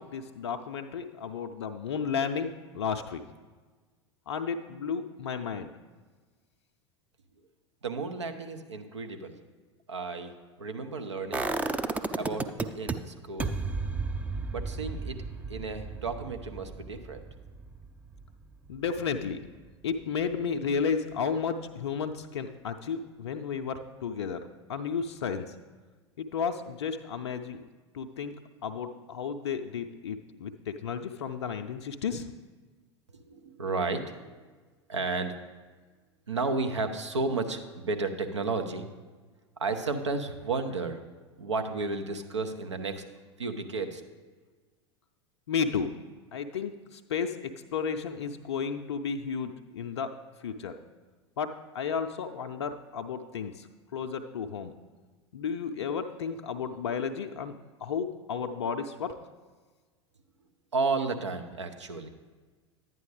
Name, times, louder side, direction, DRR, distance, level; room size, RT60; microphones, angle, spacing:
voice 1, 0.0-3.2 4.3-5.7 18.7-19.4 19.8-24.4 24.7-25.5 26.2-27.6 27.9-28.3 28.6-32.3 45.5-45.9 46.3-47.4 47.7-50.1 50.4-50.7 51.4-54.7 55.3-59.1, left 6 dB, 70° left, 7 dB, 0.5 m, -33 dB
voice 2, 7.8-9.4 9.9-10.3 10.6-11.5 12.1-13.5 14.5-15.2 15.5-17.2 33.1-34.3 34.9-35.3 36.3-38.9 39.6-41.0 41.4-43.0 43.4-44.0 60.7-62.1, right 3 dB, 80° right, 6 dB, 0.7 m, -32 dB
sound 1, 11.3-12.9 13.4-19.2 19.6-19.7, right 3 dB, 10° right, 0.4 m, -33 dB
10.5 x 9.1 x 3.3 m, 1.4 s
figure-of-eight pair, 80°, 15 cm